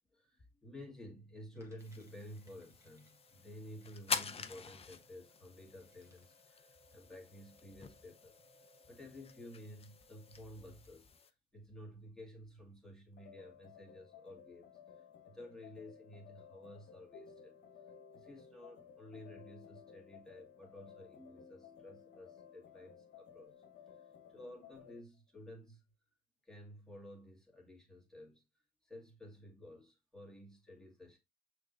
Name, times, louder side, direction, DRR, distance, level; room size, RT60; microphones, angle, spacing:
voice 1, 0.1-8.4 8.9-17.6 17.9-25.8 26.4-28.4 28.8-31.2, left 1 dB, 5° left, 2.0 m, -53 dB
sound 1, 1.5-11.1, left 1 dB, 15° right, 1.5 m, -69 dB
sound 2, 1.8-11.3, left 5 dB, 30° left, 0.5 m, -46 dB
sound 3, 13.2-25.0, left 7 dB, 65° left, 1.0 m, -57 dB
5.8 x 3.2 x 2.6 m
cardioid pair, 90°, 20 cm